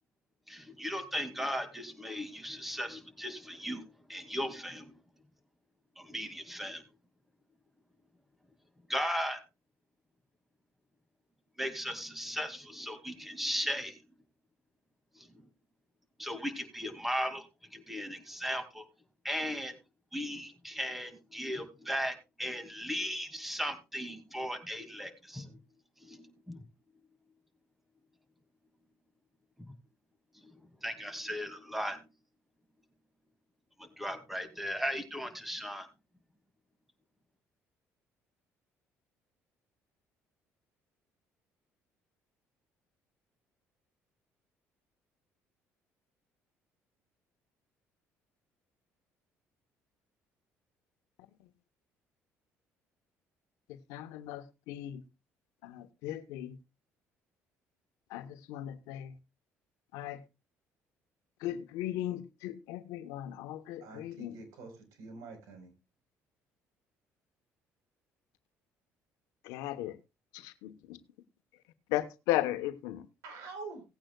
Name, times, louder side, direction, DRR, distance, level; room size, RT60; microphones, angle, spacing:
voice 1, 0.5-4.9 6.0-6.8 8.9-9.4 11.6-14.0 16.2-17.4 17.7-18.8 19.2-19.7 20.1-25.5 26.0-26.6 29.6-29.7 30.8-32.0 33.8-35.9, equal, 5° right, 2.3 m, -37 dB
voice 2, 53.7-55.0 55.6-56.6 58.1-59.1 59.9-60.2 61.4-64.4 69.4-70.0 70.3-71.0 71.9-73.1, left 14 dB, 90° left, 1.1 m, -36 dB
voice 3, 63.8-64.7 65.0-65.7 73.2-73.8, right 4 dB, 80° right, 4.3 m, -45 dB
18.0 x 9.0 x 2.3 m
cardioid pair, 95°, 5 cm